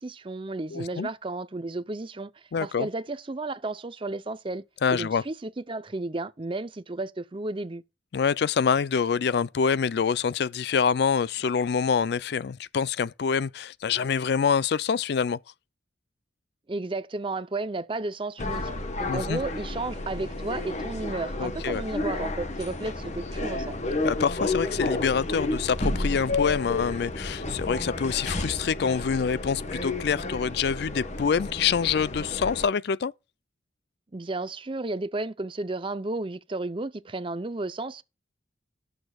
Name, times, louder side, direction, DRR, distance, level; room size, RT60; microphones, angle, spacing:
voice 1, 0.0-2.3 2.6-4.6 4.9-7.8 16.7-18.7 19.0-23.8 34.1-38.0, right 2 dB, 30° right, 0.6 m, -33 dB
voice 2, 0.7-1.1 2.5-2.9 4.8-5.2 8.1-15.4 19.1-19.4 21.4-21.8 24.0-33.1, left 6 dB, 60° left, 0.4 m, -26 dB
sound 1, 18.4-32.7, left 2 dB, 40° left, 1.1 m, -31 dB
17.5 x 6.6 x 2.3 m
head